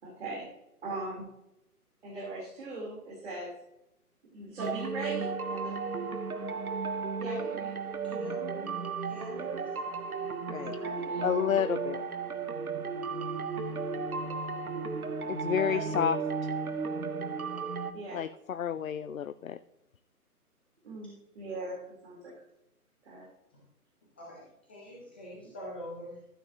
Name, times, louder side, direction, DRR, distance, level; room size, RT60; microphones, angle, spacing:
voice 1, 0.0-0.5 0.8-1.3 2.0-3.5 4.3-5.7 7.2-7.7 10.8-11.3 15.6-16.0 17.9-18.2 20.8-22.3 23.0-23.3, right 2 dB, 45° right, -4 dB, 3.8 m, -40 dB
sound 1, 4.6-17.9, right 4 dB, 70° right, 1.1 m, -34 dB
voice 2, 8.1-8.8 9.1-9.7 24.2-24.4 24.7-26.1, equal, 5° left, -5 dB, 0.7 m, -43 dB
voice 3, 11.2-12.0 15.3-16.2 18.1-19.6, left 8 dB, 60° left, 14 dB, 0.5 m, -30 dB
13.5 x 8.5 x 2.9 m, 0.84 s
figure-of-eight pair, 140°, 46 cm